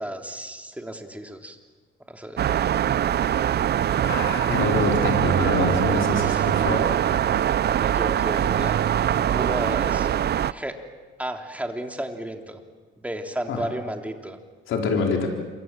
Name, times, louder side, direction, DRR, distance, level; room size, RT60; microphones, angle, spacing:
voice 1, 0.0-1.6 2.1-2.5 6.1-6.4 7.8-8.8 9.3-10.1 10.5-10.7 11.2-12.6 13.0-14.4, right 1 dB, 5° right, 3 dB, 3.4 m, -33 dB
sound 1, 2.4-10.5, right 10 dB, 55° right, 0.7 m, -22 dB
voice 2, 4.0-6.9 13.5-13.6 14.7-15.3, left 4 dB, 75° left, 2 dB, 4.4 m, -26 dB
27.5 x 24.0 x 7.7 m, 1.4 s
cardioid pair, 90°, 20 cm